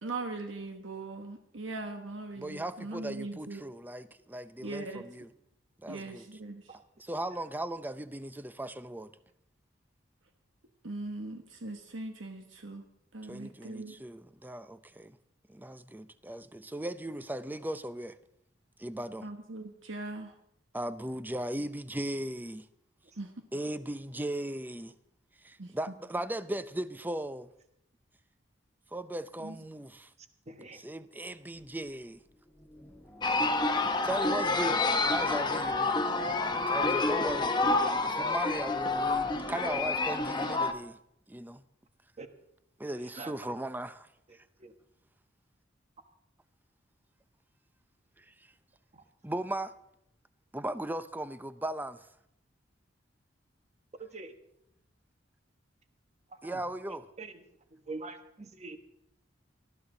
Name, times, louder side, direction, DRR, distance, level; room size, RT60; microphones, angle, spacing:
voice 1, 0.0-3.6 4.6-5.1 5.9-6.6 10.8-12.8 13.1-13.9 19.2-20.3 23.2-23.3 25.6-25.7 29.4-29.5, right 2 dB, 80° right, 1.2 m, -40 dB
voice 2, 2.4-5.3 5.8-6.4 7.0-9.1 13.2-15.2 15.5-18.2 18.8-19.3 20.7-22.7 23.5-24.9 25.4-27.5 28.9-30.1 30.7-32.2 34.0-36.1 36.7-37.5 38.0-41.0 41.3-41.6 42.8-44.4 48.2-48.3 49.2-49.7 50.5-52.0 56.4-57.1, right 1 dB, 10° right, 0.5 m, -37 dB
voice 3, 30.5-30.8 36.3-37.0 42.2-42.3 43.2-43.3 44.6-44.7 48.9-49.0 54.0-54.3 56.4-56.6 57.2-57.4 57.7-58.8, right 3 dB, 35° right, 1.2 m, -44 dB
sound 1, 31.4-40.9, equal, 5° left, 2.1 m, -53 dB
sound 2, 33.2-40.7, left 3 dB, 25° left, 1.0 m, -28 dB
19.5 x 13.0 x 3.9 m
head